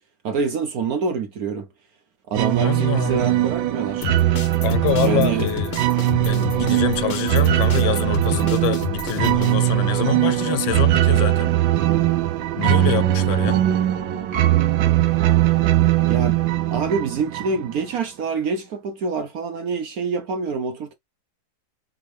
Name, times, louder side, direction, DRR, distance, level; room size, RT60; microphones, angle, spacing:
voice 1, 0.2-1.7 2.3-4.1 5.0-5.5 16.1-16.4 16.7-20.9, right 5 dB, 60° right, 1.0 m, -26 dB
sound 1, 2.3-17.8, right 14 dB, 80° right, 1.4 m, -20 dB
voice 2, 2.6-3.5 4.6-5.7 6.2-11.6 12.6-13.6, left 12 dB, 80° left, 1.3 m, -26 dB
sound 2, 4.0-9.5, left 9 dB, 55° left, 0.8 m, -31 dB
3.9 x 3.6 x 3.2 m
omnidirectional pair, 2.1 m